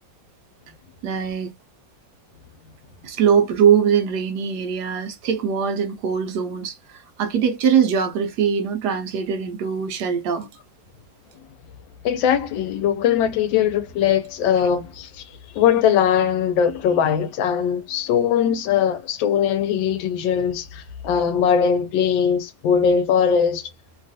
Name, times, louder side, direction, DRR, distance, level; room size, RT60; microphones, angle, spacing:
voice 1, 1.0-1.5 3.0-10.5, right 7 dB, 75° right, 1.0 m, -21 dB
voice 2, 12.0-15.2 15.5-23.7, left 8 dB, 80° left, 1.4 m, -20 dB
3.2 x 2.4 x 2.6 m
omnidirectional pair, 2.1 m